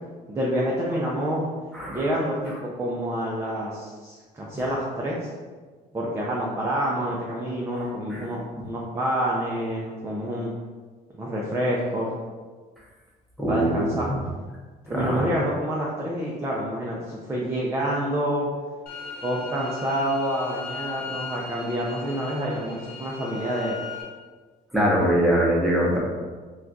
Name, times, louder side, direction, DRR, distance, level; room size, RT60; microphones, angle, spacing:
voice 1, 0.3-1.5 1.9-5.2 5.9-10.5 11.1-12.1 13.5-14.1 14.9-18.5 19.2-23.8, equal, 15° right, -4 dB, 0.4 m, -27 dB
voice 2, 1.7-2.1 7.7-8.3 13.4-14.1 14.9-15.2 24.7-26.0, equal, ahead, -6 dB, 0.9 m, -23 dB
sound 1, 18.9-24.0, left 5 dB, 60° left, 0.6 m, -38 dB
2.3 x 2.2 x 3.9 m, 1.4 s
cardioid pair, 110°, 17 cm